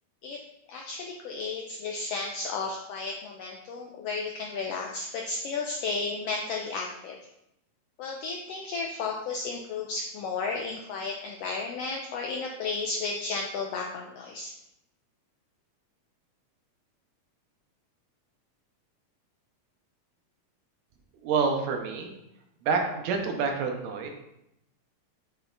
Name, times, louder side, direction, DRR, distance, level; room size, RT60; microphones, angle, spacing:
voice 1, 0.7-7.2 8.0-14.5, left 4 dB, 90° left, 0 dB, 1.4 m, -33 dB
voice 2, 21.2-22.1 22.6-24.1, right 5 dB, 75° right, 3 dB, 2.0 m, -27 dB
7.9 x 3.4 x 3.9 m, 0.84 s
omnidirectional pair, 3.4 m